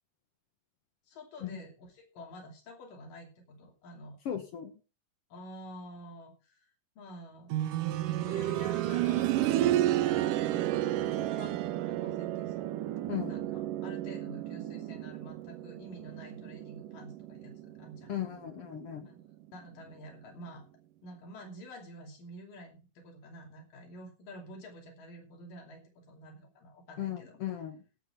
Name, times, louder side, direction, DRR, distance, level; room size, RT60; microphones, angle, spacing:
voice 1, 1.1-4.2 5.3-6.7 7.0-7.5 8.1-12.7 13.3-18.1 19.0-19.2 19.5-20.7 21.0-27.4, equal, 85° left, 1 dB, 4.5 m, -49 dB
voice 2, 4.2-4.7 13.1-13.3 18.1-19.1 27.0-27.8, left 10 dB, 60° left, 7 dB, 1.7 m, -36 dB
sound 1, 7.5-18.3 18.6-18.7 19.6-19.7, right 14 dB, 85° right, 2.3 m, -31 dB
17.0 x 6.0 x 5.8 m, 0.34 s
omnidirectional pair, 3.7 m